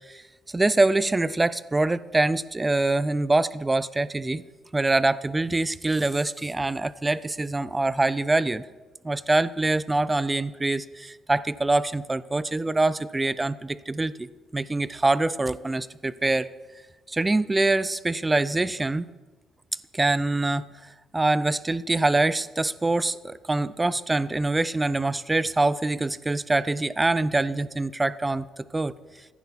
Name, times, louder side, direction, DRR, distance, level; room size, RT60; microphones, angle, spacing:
voice 1, 0.5-4.4 4.7-8.6 9.0-16.5 17.1-19.1 19.9-20.7 21.1-28.9, right 2 dB, 15° right, 17 dB, 0.4 m, -24 dB
15.0 x 10.5 x 4.1 m, 1.2 s
cardioid pair, 140°, 0 cm